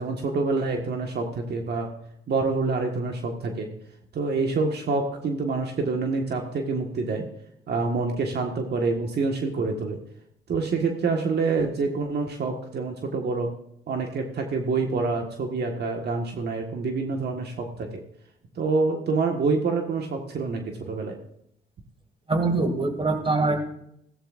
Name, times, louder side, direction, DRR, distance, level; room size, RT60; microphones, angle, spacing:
voice 1, 0.0-1.9 2.3-3.7 4.1-7.2 7.7-10.0 10.5-13.5 13.9-18.0 18.5-21.2, right 4 dB, 55° right, 2 dB, 1.7 m, -27 dB
voice 2, 22.3-23.6, right 3 dB, 25° right, 6 dB, 2.4 m, -23 dB
16.0 x 14.5 x 2.6 m, 0.74 s
cardioid pair, 90°, 20 cm